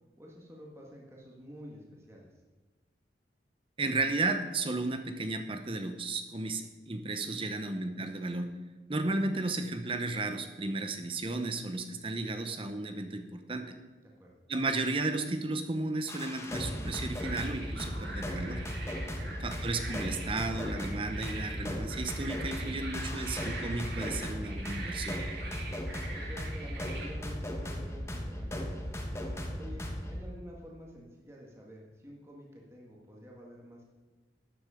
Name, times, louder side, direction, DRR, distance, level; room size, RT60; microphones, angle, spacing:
voice 1, 0.2-2.3 7.3-7.5 14.0-14.3 26.1-28.8 29.5-29.8 30.1-33.8, equal, 15° right, -2 dB, 1.8 m, -49 dB
voice 2, 3.8-8.5 8.9-13.7 14.5-18.6 19.4-25.2, right 2 dB, 30° right, 7 dB, 0.8 m, -34 dB
sound 1, 16.1-30.2, equal, 15° left, 1.4 m, -37 dB
sound 2, 17.2-27.1, right 2 dB, 80° right, 3.7 m, -43 dB
12.5 x 9.5 x 5.0 m, 1.3 s
head